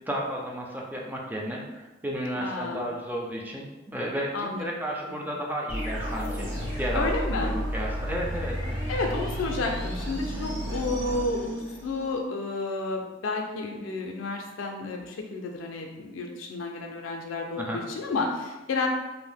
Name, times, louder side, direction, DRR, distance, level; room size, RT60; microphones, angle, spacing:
voice 1, 0.1-6.5 6.8-7.1 7.4-9.0 17.6-17.8, equal, 10° right, -1 dB, 0.4 m, -33 dB
voice 2, 2.3-2.9 4.3-4.6 5.1-5.4 6.9-7.5 8.9-18.9, left 3 dB, 80° left, 2 dB, 0.4 m, -31 dB
sound 1, 5.7-12.1, equal, 45° right, 1.5 m, -32 dB
2.6 x 2.0 x 3.4 m, 1.1 s
head